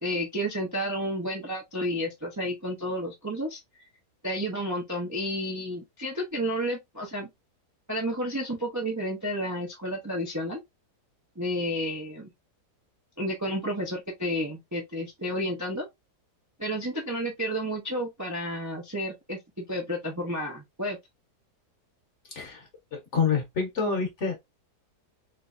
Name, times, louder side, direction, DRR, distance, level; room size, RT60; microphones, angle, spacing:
voice 1, 0.0-3.6 4.2-7.3 7.9-10.6 11.4-12.3 13.2-15.9 16.6-21.0, equal, 15° right, 0.6 m, -31 dB
voice 2, 22.3-22.6 22.9-24.3, left 5 dB, 50° left, 1.4 m, -27 dB
3.5 x 3.2 x 2.5 m
omnidirectional pair, 1.8 m